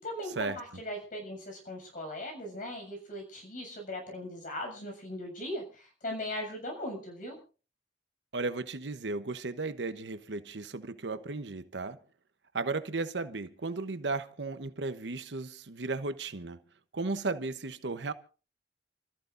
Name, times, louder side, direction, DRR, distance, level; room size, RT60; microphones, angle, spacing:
voice 1, 0.0-7.4, left 1 dB, 50° left, 7.1 m, -39 dB
voice 2, 8.3-12.0 12.5-16.6 16.9-18.1, right 3 dB, 85° right, 1.0 m, -35 dB
29.0 x 14.0 x 2.6 m
head